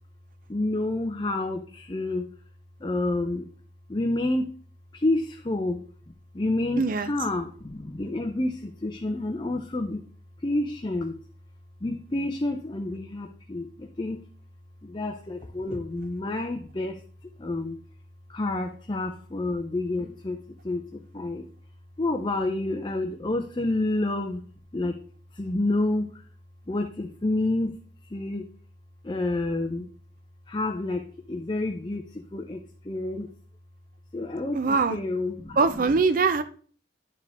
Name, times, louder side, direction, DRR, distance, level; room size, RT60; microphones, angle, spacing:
voice 1, 0.5-2.3 2.8-3.5 3.9-4.5 4.9-5.8 6.3-10.0 10.4-11.1 11.8-14.2 14.8-17.0 17.4-17.8 18.3-20.4 20.6-21.5 22.0-24.4 24.7-25.0 25.3-26.2 26.7-27.8 28.1-28.4 29.0-29.9 30.5-33.3 34.1-35.6, left 2 dB, 25° left, 3 dB, 0.6 m, -29 dB
voice 2, 6.8-7.1 34.5-35.0 35.6-36.4, right 4 dB, 50° right, 10 dB, 0.5 m, -22 dB
10.5 x 4.6 x 3.5 m, 0.43 s
head